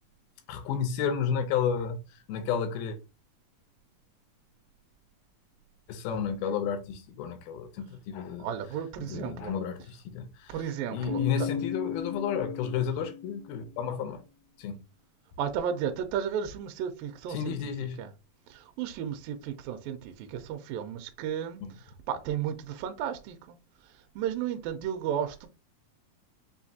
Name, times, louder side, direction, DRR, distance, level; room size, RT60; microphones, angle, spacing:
voice 1, 0.5-3.0 5.9-8.5 9.0-10.6 10.9-14.2 14.6-14.8 17.3-18.0 21.6-21.7, left 7 dB, 80° left, 2.6 m, -32 dB
voice 2, 8.4-9.5 10.5-11.5 15.4-17.7 18.0-18.1 18.5-23.6 24.2-25.5, right 9 dB, 80° right, 2.0 m, -34 dB
Keyboard (musical), 11.1-13.7, left 7 dB, 40° left, 0.5 m, -35 dB
6.4 x 2.6 x 2.7 m
omnidirectional pair, 4.4 m